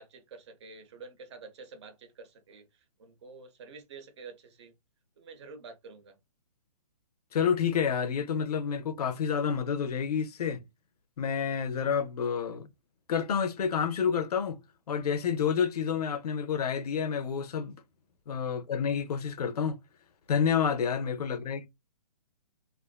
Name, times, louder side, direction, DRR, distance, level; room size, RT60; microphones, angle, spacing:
voice 1, 0.0-4.7 5.2-6.2 12.5-12.6 18.5-18.6, right 4 dB, 45° right, 0.6 m, -49 dB
voice 2, 7.3-10.6 11.2-12.7 13.1-14.6 14.9-17.7 18.3-19.8 20.3-21.7, left 7 dB, 70° left, 0.5 m, -29 dB
2.4 x 2.4 x 2.2 m
hypercardioid pair, 165°, 21 cm